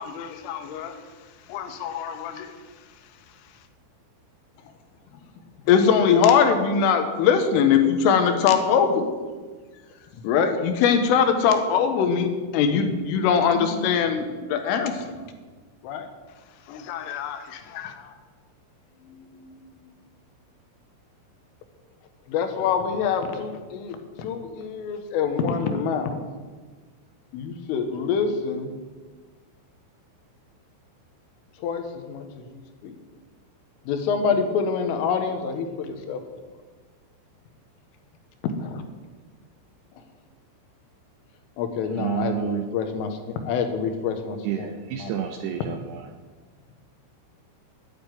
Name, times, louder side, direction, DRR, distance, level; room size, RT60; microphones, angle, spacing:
voice 1, 0.0-3.7 16.3-18.0, left 9 dB, 70° left, 6 dB, 3.1 m, -37 dB
voice 2, 5.7-9.1 10.2-15.0 15.8-16.1 19.1-19.4 22.3-26.2 27.3-28.7 31.6-32.2 32.8-32.9 33.9-36.2 38.6-38.8 41.6-43.1 43.5-44.4 45.0-45.1, left 6 dB, 90° left, 7 dB, 4.0 m, -23 dB
voice 3, 41.8-42.7 44.4-46.1, right 11 dB, 85° right, 5 dB, 2.3 m, -30 dB
11.5 x 10.0 x 9.5 m, 1.4 s
omnidirectional pair, 5.7 m